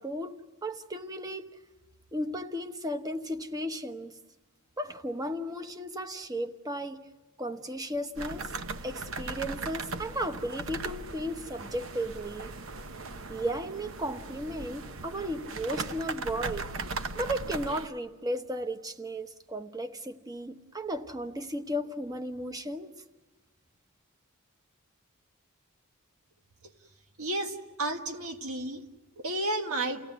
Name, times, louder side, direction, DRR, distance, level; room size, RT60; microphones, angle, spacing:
voice 1, 0.0-1.5 2.1-4.2 4.8-7.0 7.4-8.5 8.8-12.5 13.3-16.7 17.1-23.0, equal, 15° right, 1.1 m, -35 dB
sound 1, 8.2-17.9, right 3 dB, 65° right, 0.9 m, -38 dB
voice 2, 27.2-28.8 29.2-30.0, right 2 dB, 85° right, 1.7 m, -32 dB
29.5 x 17.0 x 9.5 m
head